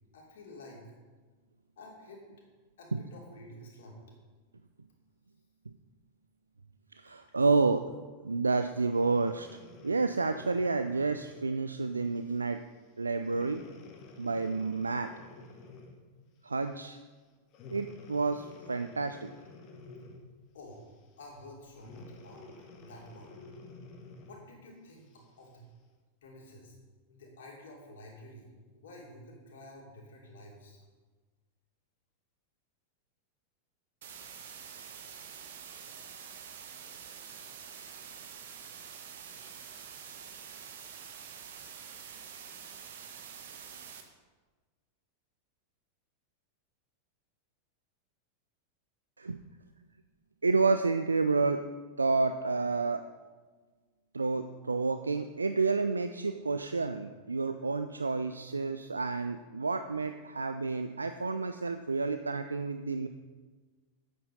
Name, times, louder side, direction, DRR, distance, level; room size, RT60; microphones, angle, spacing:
voice 1, 0.1-0.9 1.8-2.3 2.8-4.0 20.5-20.9 21.2-22.4 22.7-23.4 24.2-25.7 26.2-26.8 27.1-30.8, left 1 dB, 60° left, -2 dB, 3.0 m, -50 dB
voice 2, 7.0-7.8 8.2-12.6 13.0-13.6 14.2-15.1 16.4-17.0 17.7-19.3 49.2-49.4 50.4-51.6 52.0-53.0 54.1-63.1, right 4 dB, 80° right, 9 dB, 0.4 m, -30 dB
Breathing, 8.9-11.5 12.2-12.4 13.2-16.1 17.5-20.4 21.8-24.5 25.1-25.2, left 3 dB, 40° left, 1.5 m, -51 dB
sound 1, 34.0-44.0, right 7 dB, 60° right, 1.2 m, -47 dB
8.8 x 8.6 x 5.4 m, 1.4 s
figure-of-eight pair, 90°, 0 cm